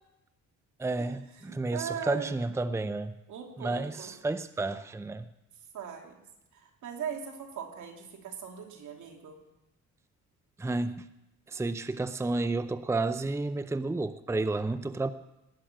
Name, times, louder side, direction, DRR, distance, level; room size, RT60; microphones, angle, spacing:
voice 1, 0.8-3.1 3.6-5.2 10.6-11.0 11.5-15.1, right 2 dB, 10° right, 12 dB, 0.6 m, -31 dB
voice 2, 1.5-2.4 3.3-4.1 5.7-6.2 6.5-9.4, right 8 dB, 75° right, 2 dB, 2.9 m, -39 dB
19.5 x 6.5 x 9.0 m, 0.91 s
cardioid pair, 90°, 30 cm